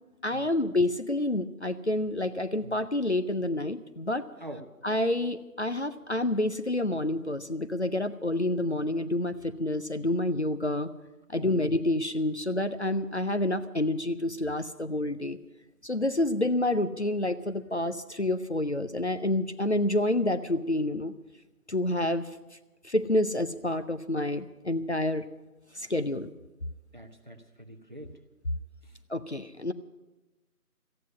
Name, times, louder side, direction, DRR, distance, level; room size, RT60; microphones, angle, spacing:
voice 1, 0.2-4.3 4.8-10.9 11.3-15.4 15.8-21.1 21.7-22.3 22.8-25.3 25.7-26.3 29.1-29.7, left 1 dB, 50° left, 10 dB, 0.6 m, -28 dB
voice 2, 26.9-28.1 28.8-28.9, right 1 dB, 30° right, 5 dB, 1.0 m, -44 dB
14.0 x 9.4 x 9.6 m, 1.1 s
figure-of-eight pair, 170°, 45 cm